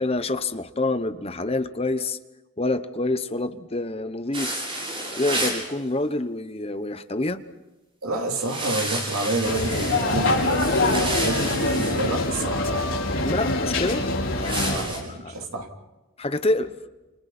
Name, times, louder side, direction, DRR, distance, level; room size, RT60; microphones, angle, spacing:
voice 1, 0.0-2.2 2.6-4.5 5.2-7.4 13.2-14.1 14.3-14.9 15.2-15.4 16.2-16.7, left 2 dB, 25° left, 10 dB, 1.0 m, -27 dB
sound 1, 4.3-5.7 8.4-12.5 14.4-15.0, right 1 dB, 25° right, 7.8 m, -31 dB
voice 2, 8.0-12.8 13.2-13.3 14.7-15.7, right 2 dB, 90° right, 1 dB, 3.7 m, -29 dB
sound 2, 9.4-14.8, left 2 dB, 60° left, 5.6 m, -24 dB
29.5 x 28.5 x 4.4 m, 1.1 s
head